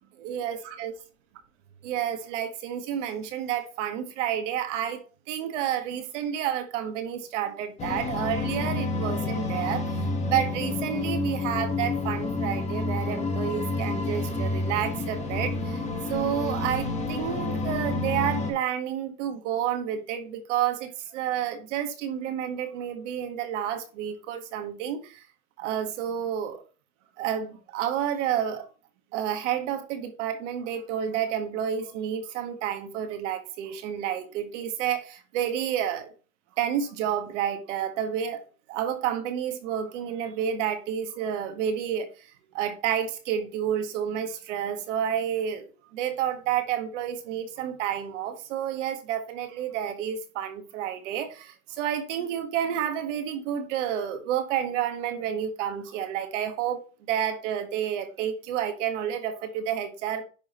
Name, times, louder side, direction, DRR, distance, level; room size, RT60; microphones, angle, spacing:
voice 1, 0.2-0.9 1.8-15.8 16.1-25.3 25.6-26.6 27.2-28.6 29.1-36.1 36.6-60.2, right 9 dB, 50° right, 1.5 m, -30 dB
sound 1, 7.8-18.5, left 3 dB, 15° left, 1.2 m, -29 dB
10.5 x 3.7 x 3.0 m
hypercardioid pair, 120°, 47 cm